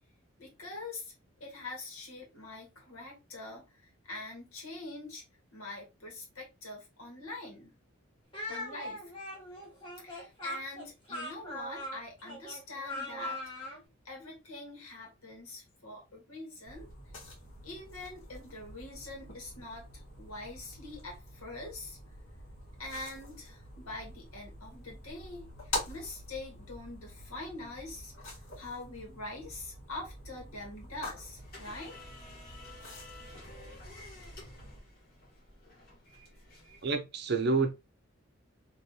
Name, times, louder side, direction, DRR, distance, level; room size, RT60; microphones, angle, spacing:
voice 1, 0.4-1.1 1.4-5.2 5.5-7.7 8.5-9.0 10.0-13.7 14.1-17.0 17.6-22.0 22.8-31.9, left 2 dB, 85° left, 1.7 m, -44 dB
Speech, 8.3-13.8, left 1 dB, 25° left, 1.1 m, -40 dB
sound 1, 16.7-34.8, left 1 dB, 70° left, 1.5 m, -46 dB
sound 2, 31.4-36.9, left 2 dB, 45° left, 1.4 m, -52 dB
voice 2, 36.8-37.7, right 4 dB, 50° right, 0.5 m, -28 dB
3.1 x 3.0 x 2.8 m
head